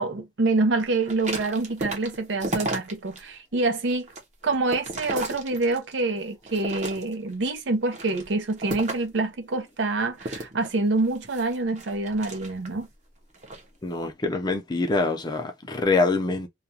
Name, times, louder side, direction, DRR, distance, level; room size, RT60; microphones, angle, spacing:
voice 1, 0.0-4.1 4.4-12.9, right 3 dB, 85° right, 0.6 m, -26 dB
sound 1, 1.0-3.2 3.6-6.0 6.4-7.3 7.8-9.2 10.2-12.8 13.3-13.6, right 2 dB, 40° right, 0.7 m, -34 dB
voice 2, 13.8-16.5, left 3 dB, 25° left, 0.5 m, -25 dB
2.4 x 2.2 x 2.7 m
head